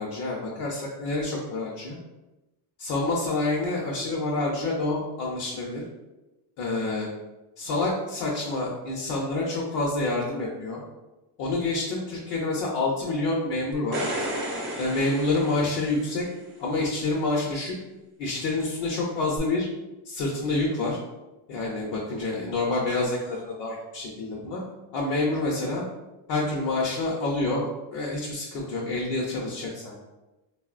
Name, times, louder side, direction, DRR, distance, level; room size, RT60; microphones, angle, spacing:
voice 1, 0.0-2.0 2.8-5.8 6.6-7.1 7.6-10.8 11.4-14.1 14.8-16.3 16.6-17.7 18.2-19.7 20.0-21.0 21.5-24.6 24.9-25.8 26.3-30.0, left 2 dB, 45° left, -3 dB, 0.5 m, -28 dB
sound 1, 13.7-16.3 19.4-19.5, right 1 dB, 30° right, 0.3 m, -33 dB
3.7 x 2.0 x 2.4 m, 1.0 s
cardioid pair, 160°, 49 cm